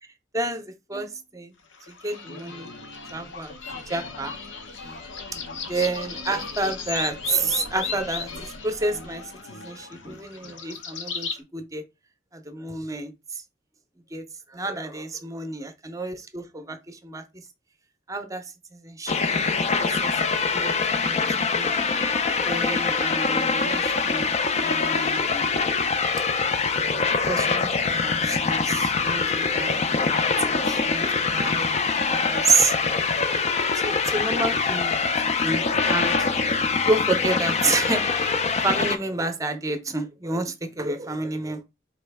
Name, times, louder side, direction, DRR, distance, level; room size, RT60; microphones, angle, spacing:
voice 1, 0.3-1.5 2.0-2.7 3.1-3.5 3.9-4.3 5.7-9.2 9.5-11.8 12.3-13.1 14.1-14.2 14.5-17.2 18.1-18.4 18.8-19.1 19.8-20.1 20.5-21.2 21.6-24.3 24.6-25.4 27.2-29.9 30.5-31.0 31.3-32.7 33.8-36.4 36.9-38.3 38.6-41.6, right 3 dB, 20° right, 0.6 m, -29 dB
sound 1, 1.7-11.4, left 5 dB, 90° left, 0.8 m, -36 dB
sound 2, 19.1-39.0, left 4 dB, 35° left, 0.4 m, -24 dB
4.1 x 3.0 x 3.4 m
head